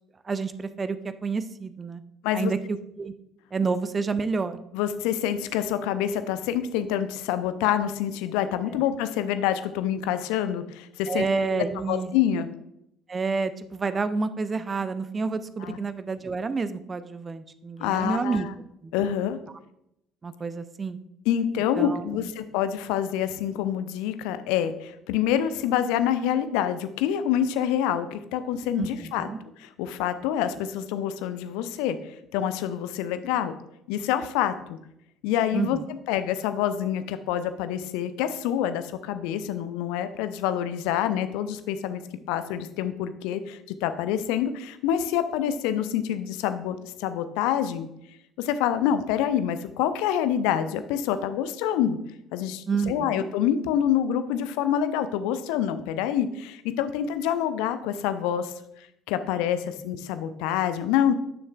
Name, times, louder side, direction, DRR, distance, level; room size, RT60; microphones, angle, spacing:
voice 1, 0.2-2.0 2.3-3.1 3.5-4.6 11.1-12.1 13.1-18.5 18.8-18.9 20.2-21.0 21.8-22.2 28.8-29.4 35.5-35.8 52.7-53.3, right 4 dB, 30° right, 13 dB, 0.5 m, -29 dB
voice 2, 4.7-12.5 15.6-15.8 17.8-18.5 18.9-19.4 21.3-29.3 29.6-33.5 33.9-34.8 35.2-35.8 36.1-42.0 42.3-47.9 48.4-52.0 52.3-58.5 59.1-61.1, left 10 dB, 65° left, 11 dB, 0.4 m, -27 dB
9.5 x 6.4 x 2.3 m, 0.79 s
figure-of-eight pair, 55°, 0 cm